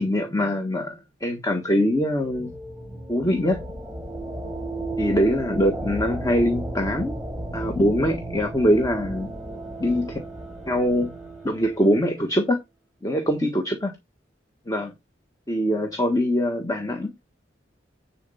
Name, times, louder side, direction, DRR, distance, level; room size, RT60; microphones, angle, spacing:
voice 1, 0.0-2.5 3.1-3.6 5.0-7.2 7.5-9.3 9.8-10.2 10.7-11.1 11.4-12.6 13.0-13.9 14.7-14.9 15.5-17.1, equal, 20° left, 1.3 m, -23 dB
sound 1, 1.7-12.3, right 2 dB, ahead, 4.2 m, -34 dB
10.5 x 4.3 x 5.5 m
head